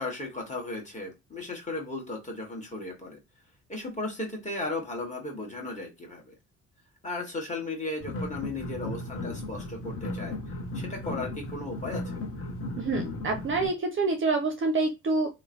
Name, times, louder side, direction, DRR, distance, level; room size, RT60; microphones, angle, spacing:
voice 1, 0.0-3.2 3.7-6.3 7.0-10.4 10.7-12.1, left 2 dB, 20° left, 1.4 m, -35 dB
sound 1, 8.0-13.7, left 2 dB, 35° left, 0.9 m, -36 dB
voice 2, 12.8-15.3, right 3 dB, 30° right, 0.5 m, -27 dB
3.0 x 2.1 x 2.5 m
hypercardioid pair, 50°, 39 cm